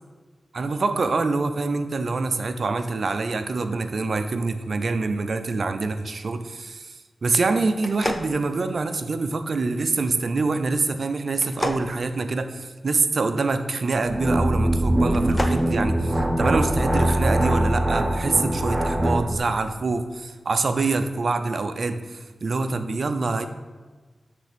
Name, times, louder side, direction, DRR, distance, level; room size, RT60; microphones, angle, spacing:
voice 1, 0.5-6.9 7.2-23.5, right 3 dB, 70° right, 9 dB, 0.5 m, -25 dB
sound 1, 7.8-9.2 11.3-12.9 15.0-15.7, left 1 dB, 25° left, 0.7 m, -31 dB
sound 2, 14.0-19.3, right 1 dB, 25° right, 0.9 m, -22 dB
9.2 x 3.4 x 5.1 m, 1.4 s
cardioid pair, 55°, 0 cm